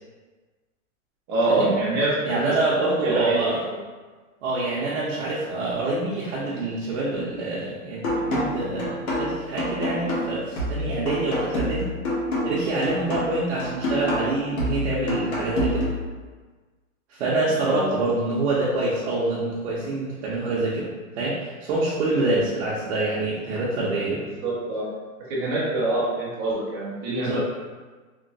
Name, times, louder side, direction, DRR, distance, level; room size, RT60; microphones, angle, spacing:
voice 1, 1.3-3.8 17.6-17.9 22.3-22.4 24.4-24.9 25.3-27.4, right 2 dB, 20° right, -7 dB, 0.5 m, -25 dB
voice 2, 2.2-3.6 4.4-11.9 12.4-15.8 17.1-20.9 21.1-24.2 27.2-27.4, right 2 dB, 55° right, -6 dB, 0.7 m, -26 dB
sound 1, 8.0-16.0, left 1 dB, 90° left, 1.2 m, -27 dB
3.0 x 2.1 x 2.6 m, 1.4 s
hypercardioid pair, 150°, 42 cm